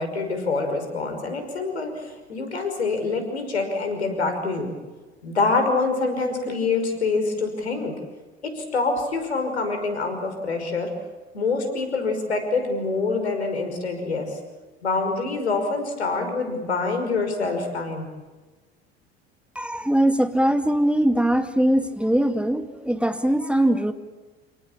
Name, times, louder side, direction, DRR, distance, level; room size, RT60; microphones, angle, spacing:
voice 1, 0.0-4.7 5.2-7.9 8.4-10.9 11.3-14.4 14.8-18.1, left 3 dB, 85° left, 6 dB, 5.6 m, -26 dB
voice 2, 19.6-23.9, right 1 dB, 5° right, 8 dB, 2.1 m, -21 dB
29.5 x 18.5 x 8.8 m, 1.2 s
hypercardioid pair, 70°, 32 cm